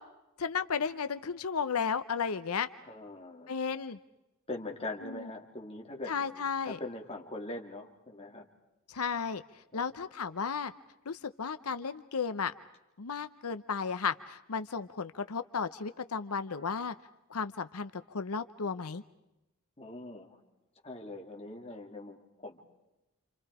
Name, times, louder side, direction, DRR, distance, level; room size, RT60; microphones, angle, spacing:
voice 1, 0.4-2.7 3.5-4.0 5.0-5.3 6.1-6.8 8.9-9.4 9.7-10.7 11.1-12.5 13.0-16.9 17.3-19.0, left 6 dB, 90° left, 11 dB, 0.8 m, -34 dB
voice 2, 2.8-3.5 4.5-8.5 9.7-9.9 19.8-20.4 20.8-22.6, left 2 dB, 25° left, 0 dB, 3.0 m, -42 dB
28.5 x 28.0 x 4.9 m, 0.96 s
head